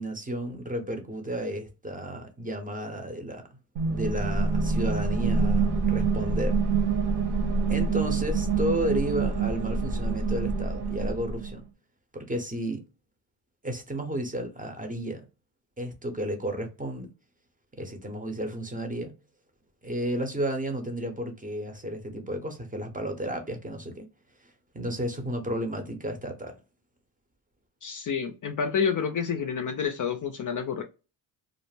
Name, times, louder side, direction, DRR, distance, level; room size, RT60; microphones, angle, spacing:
voice 1, 0.0-3.4 3.9-6.6 7.7-11.7 12.1-12.8 13.6-15.3 15.8-17.1 17.8-19.2 19.8-24.1 24.7-26.6, right 1 dB, 20° right, 0.6 m, -32 dB
sound 1, 3.8-11.5, right 4 dB, 55° right, 1.0 m, -26 dB
voice 2, 27.8-30.8, left 6 dB, 45° left, 0.4 m, -29 dB
2.5 x 2.0 x 3.2 m
cardioid pair, 85°, 46 cm